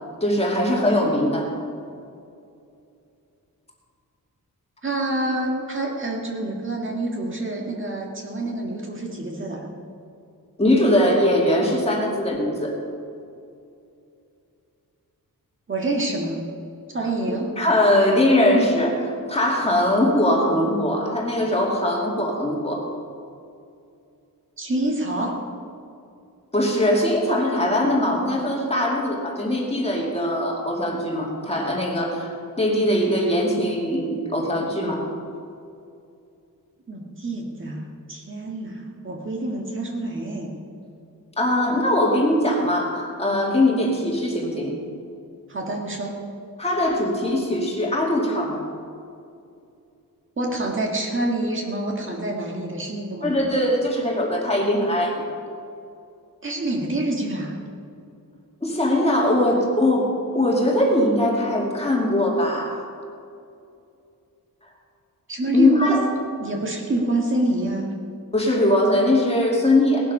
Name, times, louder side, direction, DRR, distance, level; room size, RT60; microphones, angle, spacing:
voice 1, 0.2-1.5 10.6-12.7 17.3-22.8 26.5-32.3 32.6-35.0 41.4-44.7 46.6-48.7 53.2-55.2 58.6-62.8 65.5-66.0 68.3-70.1, left 1 dB, 15° left, -2 dB, 2.4 m, -21 dB
voice 2, 4.8-9.6 15.7-16.5 16.9-17.5 24.6-25.3 36.9-40.5 45.5-46.2 50.4-53.3 56.4-57.6 65.3-66.0 66.4-67.9, right 2 dB, 35° right, 0 dB, 1.8 m, -27 dB
18.5 x 12.0 x 5.5 m, 2.5 s
wide cardioid pair, 170°, 35 cm